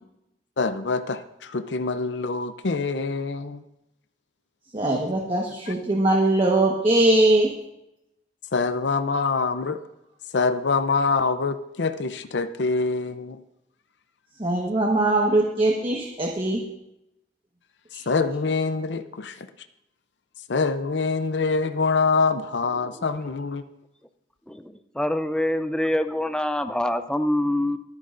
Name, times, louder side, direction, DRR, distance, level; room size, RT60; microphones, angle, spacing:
voice 1, 0.6-3.6 5.7-5.8 8.5-9.8 10.3-13.4 18.1-19.5 20.5-23.6, left 4 dB, 80° left, 10 dB, 0.6 m, -25 dB
voice 2, 4.7-7.5 14.4-16.6, right 2 dB, 30° right, -1 dB, 1.3 m, -21 dB
voice 3, 24.5-27.8, left 1 dB, 5° left, 9 dB, 0.5 m, -25 dB
24.5 x 9.6 x 2.6 m, 0.86 s
head